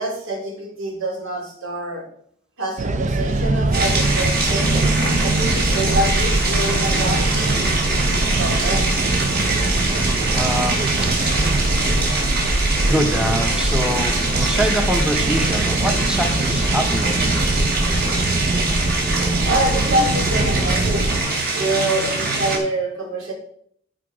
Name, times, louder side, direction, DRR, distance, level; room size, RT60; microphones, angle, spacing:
voice 1, 0.0-2.0 2.6-4.9 5.2-7.3 7.6-8.9 19.4-21.1 21.5-23.3, right 1 dB, 85° right, -1 dB, 3.9 m, -26 dB
sound 1, 2.8-21.2, right 2 dB, 35° right, 0.5 m, -22 dB
sound 2, 3.7-22.6, right 2 dB, 50° right, 2.6 m, -23 dB
voice 2, 10.3-11.3 12.8-17.3, equal, 5° right, 5 dB, 0.8 m, -24 dB
13.5 x 4.7 x 5.0 m, 0.63 s
head